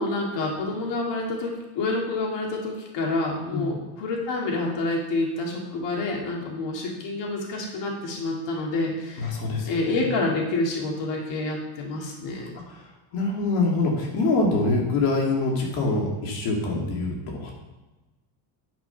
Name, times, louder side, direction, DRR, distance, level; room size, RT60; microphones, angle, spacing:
voice 1, 0.0-9.3 9.6-12.5, left 2 dB, 60° left, -1 dB, 2.5 m, -28 dB
voice 2, 9.2-10.0 12.7-12.9 13.1-17.5, left 3 dB, 85° left, -2 dB, 2.5 m, -25 dB
10.5 x 5.5 x 5.8 m, 1.1 s
cardioid pair, 130°, 48 cm